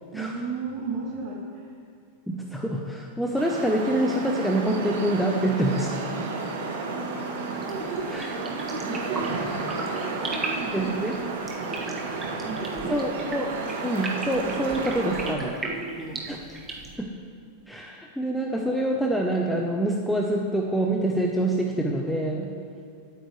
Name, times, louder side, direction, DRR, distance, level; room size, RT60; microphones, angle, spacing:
voice 1, 0.1-1.7 6.5-6.8 7.7-13.2 15.0-16.2, right 4 dB, 40° right, -6 dB, 2.6 m, -35 dB
voice 2, 2.3-6.3 8.1-8.3 10.7-11.1 12.8-13.5 13.8-15.5 16.3-16.4 17.0-17.2 17.7-22.5, right 1 dB, ahead, -1 dB, 0.9 m, -26 dB
sound 1, 3.3-15.3, right 3 dB, 85° right, 2.6 m, -32 dB
sound 2, 7.5-17.0, right 3 dB, 20° right, 1.5 m, -37 dB
18.5 x 8.9 x 3.3 m, 2.2 s
supercardioid pair, 140°, 0 cm